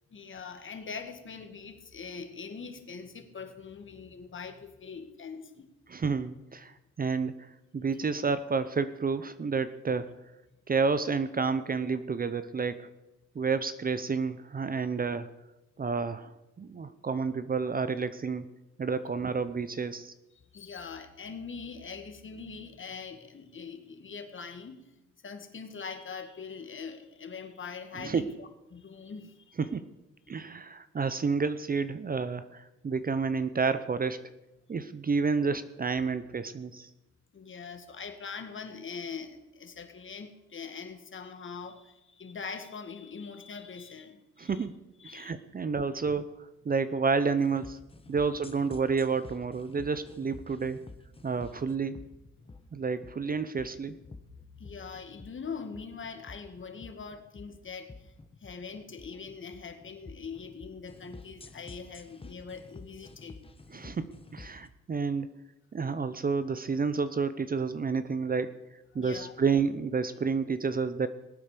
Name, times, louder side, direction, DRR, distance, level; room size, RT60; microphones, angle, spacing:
voice 1, 0.1-5.7 20.5-24.9 25.2-29.6 37.3-44.7 45.0-45.3 48.1-48.2 54.6-58.1 58.4-63.4 68.9-69.4, left 5 dB, 40° left, 7 dB, 2.1 m, -42 dB
voice 2, 5.9-10.1 10.7-12.9 13.3-15.3 15.8-16.3 16.6-18.5 18.8-20.1 28.0-28.3 29.6-29.9 30.3-34.3 34.7-36.9 44.4-44.7 45.1-47.8 48.1-50.8 51.2-52.0 52.7-54.0 63.7-65.3 65.7-68.6 68.9-71.1, right 5 dB, 30° right, 13 dB, 0.8 m, -30 dB
sound 1, 47.4-64.7, left 3 dB, 20° left, 1.3 m, -50 dB
19.0 x 8.7 x 6.8 m, 0.97 s
cardioid pair, 90°, 30 cm